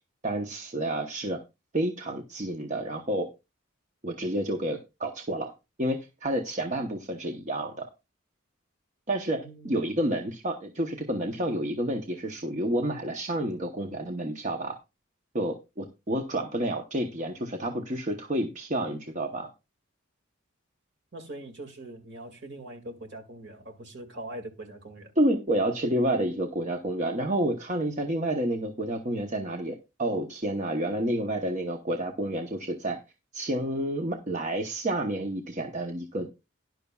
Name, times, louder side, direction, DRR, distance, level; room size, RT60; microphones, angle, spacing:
voice 1, 0.2-1.4 1.7-3.3 4.0-5.5 5.8-7.9 9.1-14.8 15.3-19.5 25.2-33.0 33.3-36.3, right 1 dB, 35° right, 0.9 m, -29 dB
voice 2, 9.4-10.0 21.1-25.1, right 1 dB, 60° right, 2.1 m, -42 dB
12.5 x 10.5 x 2.3 m
head